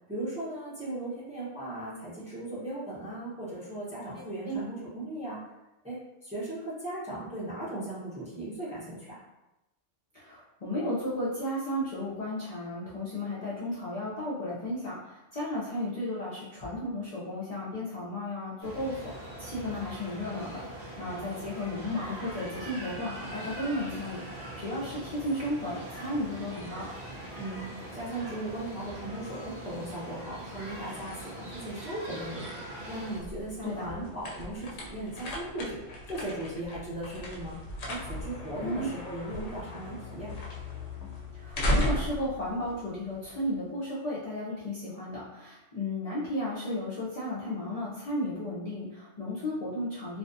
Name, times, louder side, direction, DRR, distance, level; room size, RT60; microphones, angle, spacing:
voice 1, 0.1-5.4 5.8-9.1 27.4-35.8 36.1-37.6 37.9-40.3, right 1 dB, 10° right, -8 dB, 0.6 m, -37 dB
voice 2, 4.1-4.6 10.1-26.9 33.6-33.9 38.6-38.9 41.3-50.2, left 1 dB, 50° left, -8 dB, 0.5 m, -34 dB
sound 1, 18.6-33.2, right 1 dB, 45° right, 0.8 m, -42 dB
sound 2, 32.9-43.6, left 1 dB, 70° left, 0.8 m, -36 dB
2.5 x 2.2 x 2.5 m, 0.95 s
omnidirectional pair, 1.2 m